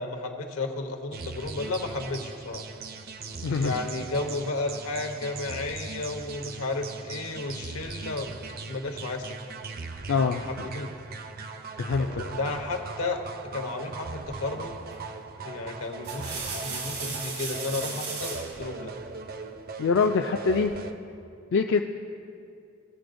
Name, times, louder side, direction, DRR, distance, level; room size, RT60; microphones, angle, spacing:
voice 1, 0.0-2.6 3.6-9.3 10.4-10.9 12.0-13.2 13.5-14.8 15.4-18.9, left 3 dB, 85° left, 5 dB, 0.9 m, -33 dB
sound 1, 1.1-20.9, right 4 dB, 45° right, 0.5 m, -39 dB
voice 2, 3.4-3.7 10.1-10.4 11.8-12.2 19.8-20.7 21.5-21.8, left 5 dB, 60° left, 4 dB, 0.3 m, -24 dB
sound 2, 14.9-15.2 15.8-18.5 20.0-20.7, right 4 dB, 85° right, 2.4 m, -36 dB
17.0 x 6.8 x 2.6 m, 2.5 s
head